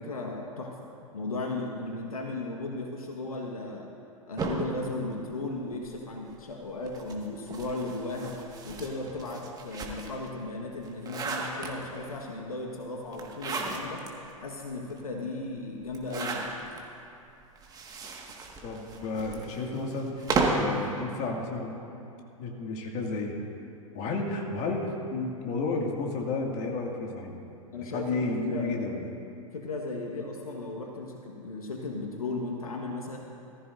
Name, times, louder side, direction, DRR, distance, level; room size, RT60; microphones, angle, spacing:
voice 1, 0.0-3.9 4.3-14.0 14.4-16.5 27.7-28.7 29.5-33.2, left 2 dB, 80° left, 1 dB, 1.4 m, -36 dB
sound 1, 4.4-6.0 6.8-10.3 10.7-12.1 13.1-14.1 14.6-14.7 14.9-15.0 15.9-16.8 17.6-20.8, right 3 dB, 20° right, 1.6 m, -33 dB
voice 2, 18.6-21.7 22.4-23.3 23.9-27.4 27.7-29.1, left 3 dB, 40° left, 0 dB, 2.1 m, -32 dB
18.5 x 14.5 x 2.6 m, 2.8 s
hypercardioid pair, 105°, 18 cm